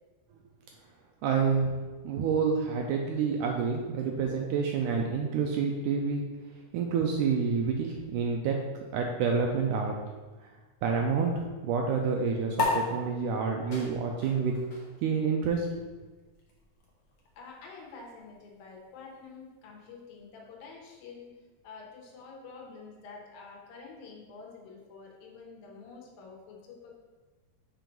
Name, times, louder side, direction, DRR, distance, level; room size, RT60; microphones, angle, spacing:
voice 1, 1.2-1.7 2.0-6.2 6.7-8.6 8.9-10.0 10.4-10.5 10.8-14.5 15.0-15.7, right 5 dB, 80° right, 1 dB, 1.9 m, -28 dB
sound 1, 12.5-19.4, left 3 dB, 60° left, 1.4 m, -37 dB
voice 2, 17.4-21.3 21.6-26.9, left 4 dB, 80° left, -1 dB, 2.8 m, -48 dB
6.1 x 4.6 x 5.2 m, 1.3 s
omnidirectional pair, 4.1 m